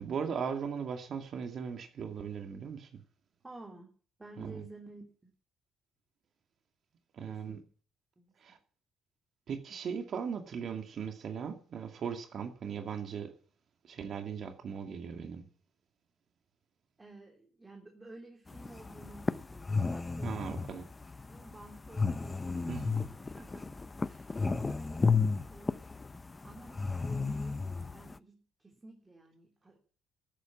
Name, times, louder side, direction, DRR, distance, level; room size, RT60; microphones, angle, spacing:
voice 1, 0.0-2.9 4.4-4.6 7.1-7.6 8.4-8.6 9.5-13.3 13.9-15.5 20.2-20.8 22.7-22.8, right 6 dB, 55° right, 2.3 m, -38 dB
voice 2, 3.4-3.9 4.2-5.3 7.3-7.7 8.2-8.6 17.0-20.7 21.3-25.1 25.5-25.8 26.4-29.8, right 2 dB, 20° right, 3.2 m, -52 dB
sound 1, 18.5-28.2, left 4 dB, 20° left, 0.7 m, -33 dB
13.5 x 9.2 x 7.3 m
cardioid pair, 95°, 0 cm